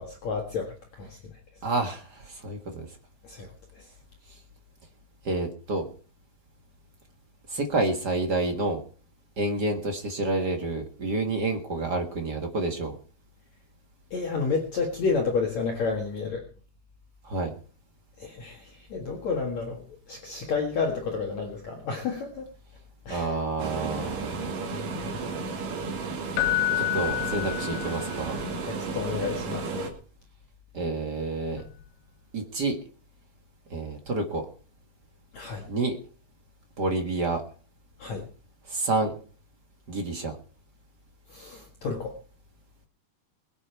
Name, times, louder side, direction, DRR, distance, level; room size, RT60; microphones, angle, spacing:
voice 1, 0.0-1.4 3.2-3.9 14.1-16.4 18.2-22.5 23.1-23.4 23.8-24.2 24.7-25.3 27.0-27.3 28.7-29.9 35.3-35.7 38.0-38.3 41.3-42.2, left 4 dB, 55° left, 1 dB, 2.7 m, -31 dB
voice 2, 1.6-2.9 5.2-5.8 7.5-8.8 9.4-12.9 17.2-17.5 23.1-24.5 26.7-28.4 30.7-31.6 32.3-32.8 33.7-34.4 35.7-36.0 36.8-37.4 38.7-39.1 39.9-40.3, right 2 dB, 45° right, 4 dB, 1.4 m, -29 dB
sound 1, 23.6-29.9, right 4 dB, 60° right, 3.8 m, -33 dB
Keyboard (musical), 26.4-28.3 31.6-31.7, left 16 dB, 90° left, 3.0 m, -28 dB
22.0 x 8.7 x 4.6 m, 0.40 s
omnidirectional pair, 4.5 m